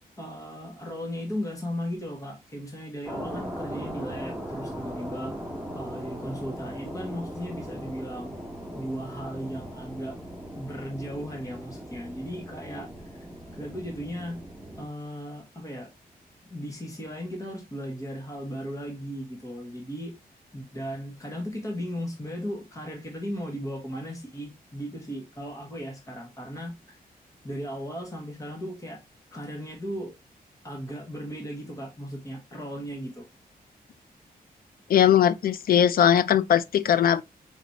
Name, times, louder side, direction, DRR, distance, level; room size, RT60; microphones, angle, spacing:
voice 1, 0.2-5.3 5.7-8.3 8.7-10.2 10.5-12.9 13.6-14.4 14.8-15.9 16.5-20.1 20.5-27.0 27.4-29.0 29.3-30.1 30.6-33.3, equal, 20° left, 1.5 m, -36 dB
sound 1, 3.1-14.9, equal, 5° right, 1.5 m, -39 dB
voice 2, 34.9-37.2, left 9 dB, 70° left, 0.4 m, -20 dB
4.5 x 4.0 x 2.8 m
wide cardioid pair, 130°, 16 cm